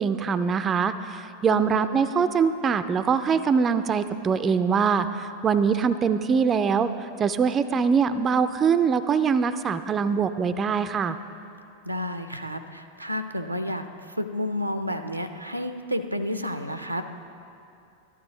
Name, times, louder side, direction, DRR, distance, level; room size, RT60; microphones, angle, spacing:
voice 1, 0.0-11.2, right 6 dB, 25° right, 11 dB, 0.4 m, -23 dB
voice 2, 1.5-2.1 11.8-17.0, left 1 dB, 90° right, 9 dB, 0.5 m, -31 dB
13.0 x 12.0 x 3.9 m, 2.6 s
figure-of-eight pair, 90°, 0 cm